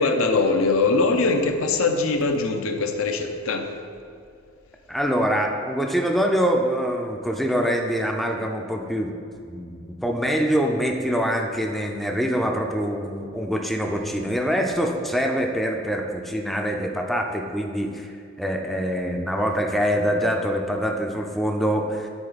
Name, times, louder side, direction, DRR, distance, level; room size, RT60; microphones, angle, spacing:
voice 1, 0.0-3.7, left 3 dB, 75° left, 5 dB, 0.6 m, -22 dB
voice 2, 4.9-9.1 9.4-18.1 18.4-22.1, equal, ahead, 2 dB, 0.4 m, -24 dB
9.5 x 3.9 x 4.0 m, 2.4 s
head